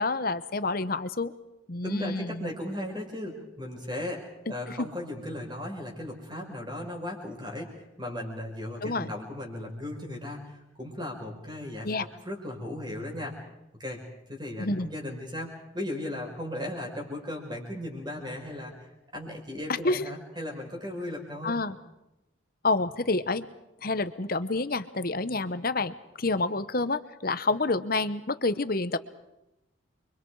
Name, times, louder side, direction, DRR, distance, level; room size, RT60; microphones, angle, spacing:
voice 1, 0.0-1.3 1.7-2.5 4.5-4.9 8.8-9.1 11.8-12.0 14.6-14.9 19.8-20.1 21.4-21.8 22.6-23.5 23.8-29.0, left 3 dB, 45° left, 13 dB, 1.0 m, -28 dB
voice 2, 1.8-13.4 13.8-14.0 14.3-18.9 19.1-21.6, left 1 dB, 20° right, 1 dB, 5.3 m, -36 dB
30.0 x 24.0 x 4.8 m, 0.92 s
head